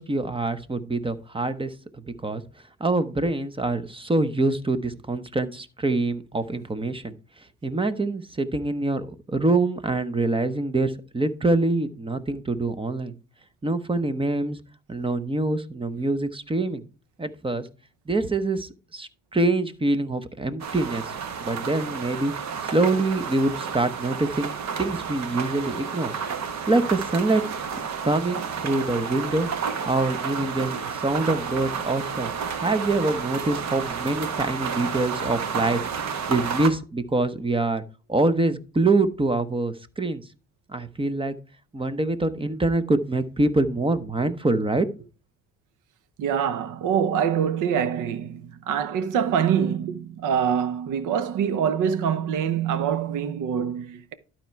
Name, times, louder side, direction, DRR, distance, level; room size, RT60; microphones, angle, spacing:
voice 1, 0.0-1.7 2.2-2.4 2.8-7.1 7.6-13.1 13.6-14.6 14.9-16.8 17.2-17.7 18.1-22.3 22.7-26.1 26.4-27.4 28.0-29.5 29.8-32.3 32.6-35.8 36.1-37.8 38.1-40.2 40.7-41.3 41.7-44.9, right 2 dB, 15° right, 0.9 m, -25 dB
sound 1, 20.6-36.7, right 6 dB, 65° right, 1.4 m, -31 dB
voice 2, 46.2-54.1, right 8 dB, 85° right, 0.9 m, -25 dB
12.0 x 4.5 x 4.6 m
cardioid pair, 90°, 30 cm